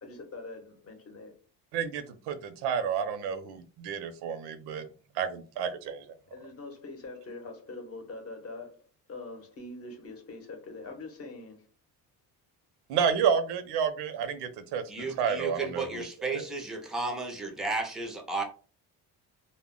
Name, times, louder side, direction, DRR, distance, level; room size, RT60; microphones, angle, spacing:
voice 1, 0.0-1.4 6.3-11.7, left 3 dB, 35° left, 0.7 m, -43 dB
voice 2, 1.7-4.8 5.1-6.0 12.9-16.1 16.3-16.4, right 7 dB, 85° right, 0.6 m, -30 dB
voice 3, 14.9-18.4, right 3 dB, ahead, 0.4 m, -33 dB
2.1 x 2.1 x 3.6 m
cardioid pair, 140°, 39 cm